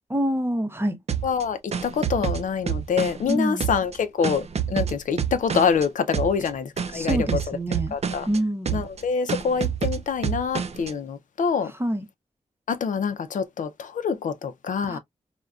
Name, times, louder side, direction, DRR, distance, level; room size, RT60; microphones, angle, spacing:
voice 1, 0.1-1.0 3.3-3.7 6.9-8.0 8.3-8.9 11.8-12.1 14.8-15.0, right 1 dB, 20° right, 0.7 m, -26 dB
sound 1, 1.1-3.3 3.6-5.9 6.1-6.5 6.8-8.4 8.7-9.0 9.3-10.9, right 8 dB, 55° right, 0.4 m, -28 dB
voice 2, 1.2-7.6 7.9-8.3 8.7-11.7 12.7-15.0, left 6 dB, 90° left, 0.5 m, -26 dB
3.6 x 2.2 x 2.3 m
wide cardioid pair, 90°, 13 cm